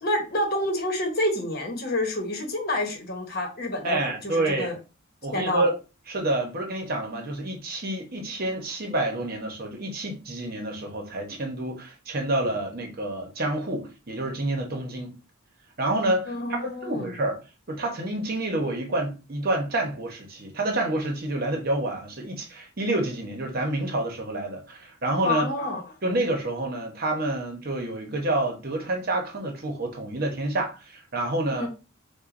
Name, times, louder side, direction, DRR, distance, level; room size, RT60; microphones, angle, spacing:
voice 1, 0.0-4.7 5.3-5.7 16.3-17.1 25.2-25.8 31.5-31.7, left 1 dB, 50° left, 1.1 m, -28 dB
voice 2, 3.8-4.7 5.2-5.7 6.1-15.1 15.8-17.4 17.7-25.5 26.0-31.7, right 2 dB, 45° right, 0.9 m, -28 dB
6.1 x 2.2 x 2.6 m
head